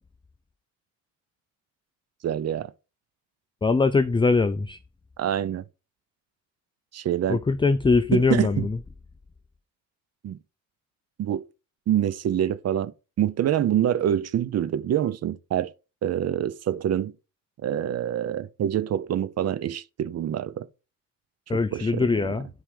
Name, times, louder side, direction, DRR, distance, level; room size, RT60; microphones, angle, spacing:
voice 1, 2.2-2.7 5.2-5.6 6.9-7.4 8.1-8.7 10.2-10.4 11.2-11.4 11.9-12.9 13.2-15.7 16.0-17.1 17.6-20.7 21.5-22.3, right 10 dB, 55° right, 0.7 m, -26 dB
voice 2, 3.6-4.8 7.3-8.8 21.5-22.5, left 4 dB, 15° left, 0.5 m, -22 dB
9.2 x 4.9 x 4.8 m
cardioid pair, 90°, 30 cm